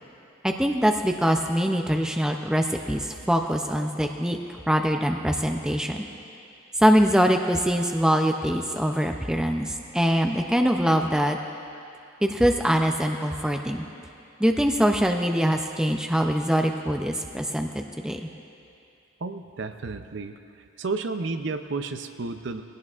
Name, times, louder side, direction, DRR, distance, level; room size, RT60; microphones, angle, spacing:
voice 1, 0.4-4.4 4.7-6.1 6.8-11.4 12.2-13.8 14.4-18.2, equal, 5° right, 3 dB, 0.4 m, -23 dB
voice 2, 19.2-20.4 20.8-22.6, right 3 dB, 55° right, 9 dB, 0.5 m, -31 dB
20.5 x 17.0 x 2.4 m, 2.6 s
head